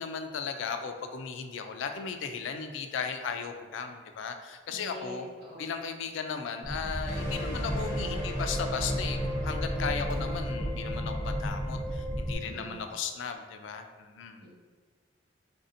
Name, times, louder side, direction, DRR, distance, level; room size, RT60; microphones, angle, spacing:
voice 1, 0.0-5.3 5.6-14.4, left 6 dB, 80° left, 6 dB, 0.3 m, -36 dB
voice 2, 4.7-5.7 12.4-12.8 14.4-14.5, equal, 65° right, -8 dB, 1.5 m, -45 dB
sound 1, 6.6-12.3, equal, 35° right, 1.1 m, -34 dB
sound 2, 7.0-12.4, equal, 10° left, 0.7 m, -36 dB
4.0 x 2.6 x 2.6 m, 1.5 s
head